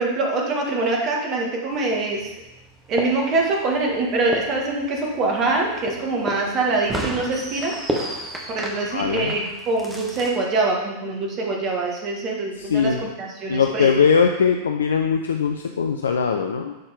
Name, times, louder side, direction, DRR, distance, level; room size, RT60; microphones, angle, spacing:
voice 1, 0.0-2.3 2.9-7.7 8.5-13.9, right 3 dB, 35° right, 0 dB, 1.9 m, -24 dB
sound 1, 1.7-10.4, right 1 dB, 10° right, 1.3 m, -33 dB
voice 2, 8.9-9.4 12.6-13.1 13.5-16.8, left 6 dB, 70° left, 5 dB, 0.5 m, -20 dB
11.5 x 4.3 x 3.7 m, 0.99 s
figure-of-eight pair, 90°, 0 cm